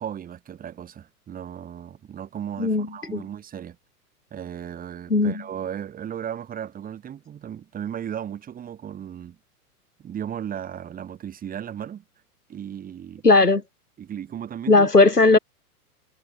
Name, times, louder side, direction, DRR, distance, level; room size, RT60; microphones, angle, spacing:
voice 1, 0.0-3.8 4.3-9.4 10.0-12.0 12.5-13.2 14.0-14.9, right 9 dB, 20° right, 3.3 m, -35 dB
voice 2, 2.6-3.2 5.1-5.4 13.2-13.6 14.7-15.4, left 3 dB, 90° left, 2.2 m, -17 dB
figure-of-eight pair, 105°, 46 cm